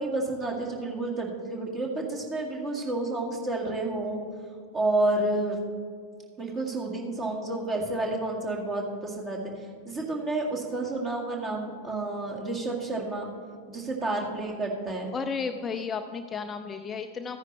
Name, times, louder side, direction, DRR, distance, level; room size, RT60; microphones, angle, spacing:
voice 1, 0.0-4.2 4.7-5.6 6.4-13.3 13.7-15.1, right 2 dB, 25° right, -1 dB, 2.0 m, -30 dB
voice 2, 15.1-17.4, left 5 dB, 20° left, 7 dB, 0.4 m, -33 dB
14.5 x 9.6 x 3.3 m, 2.1 s
figure-of-eight pair, 90°, 0 cm